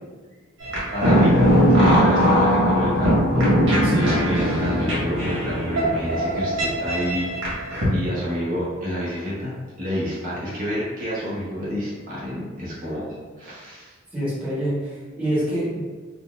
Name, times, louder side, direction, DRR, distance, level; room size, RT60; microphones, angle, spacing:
sound 1, 0.6-7.8, equal, 85° right, 1.2 m, -20 dB
voice 1, 0.9-3.2 3.9-7.5 7.9-9.5 9.8-13.1 13.4-13.9, equal, 45° right, -8 dB, 0.8 m, -29 dB
voice 2, 14.1-15.8, right 1 dB, 5° right, -11 dB, 1.0 m, -26 dB
3.9 x 2.1 x 2.2 m, 1.4 s
head